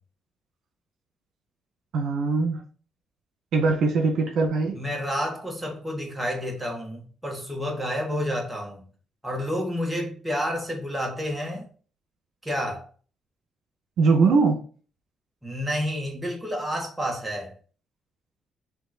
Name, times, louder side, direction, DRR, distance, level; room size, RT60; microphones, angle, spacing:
voice 1, 1.9-2.6 3.5-4.8 14.0-14.6, right 4 dB, 70° right, 1.7 m, -21 dB
voice 2, 4.7-8.8 9.2-11.7 12.4-12.9 15.4-17.5, equal, 5° right, 1.7 m, -30 dB
7.4 x 3.0 x 4.3 m
cardioid pair, 125°, 0 cm